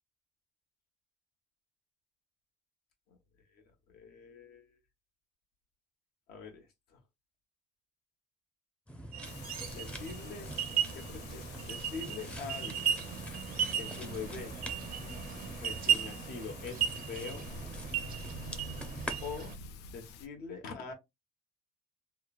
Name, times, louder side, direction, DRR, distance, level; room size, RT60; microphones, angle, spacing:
voice 1, 3.9-4.8 6.3-7.0 9.7-10.5 10.9-13.0 13.8-14.6 15.6-17.5 19.2-19.5 19.9-20.9, left 5 dB, 70° left, 1.0 m, -44 dB
sound 1, 8.9-19.2, equal, 5° left, 0.5 m, -46 dB
sound 2, 9.1-19.6, right 9 dB, 60° right, 0.5 m, -36 dB
Thunder / Rain, 9.2-20.3, left 6 dB, 85° left, 0.4 m, -50 dB
3.1 x 2.0 x 2.3 m
cardioid pair, 110°, 17 cm